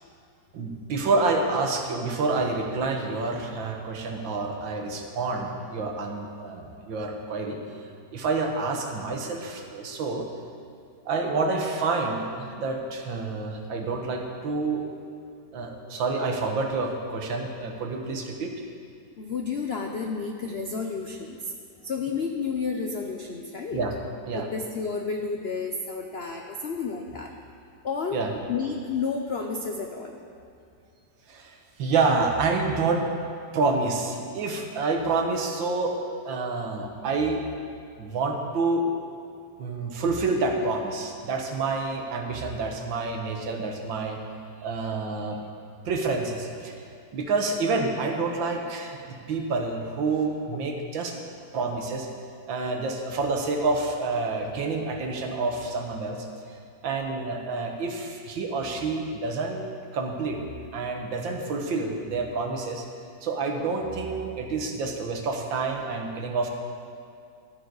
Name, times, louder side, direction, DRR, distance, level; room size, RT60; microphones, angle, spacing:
voice 1, 0.5-7.6 8.1-10.3 11.1-14.8 15.5-18.5 23.7-23.9 24.3-24.5 28.1-28.3 31.3-33.1 33.5-36.0 36.2-37.5 38.0-38.9 39.6-44.2 44.6-45.4 45.8-46.7 47.1-51.2 51.5-52.1 52.5-56.3 56.8-59.7 59.9-60.4 60.7-62.9 63.2-66.5, right 3 dB, 80° right, 2 dB, 1.9 m, -28 dB
voice 2, 19.2-21.5 21.8-23.8 24.3-27.3 27.8-28.2 28.5-30.2, left 5 dB, 75° left, 3 dB, 0.5 m, -31 dB
14.5 x 12.0 x 4.0 m, 2.4 s
omnidirectional pair, 2.1 m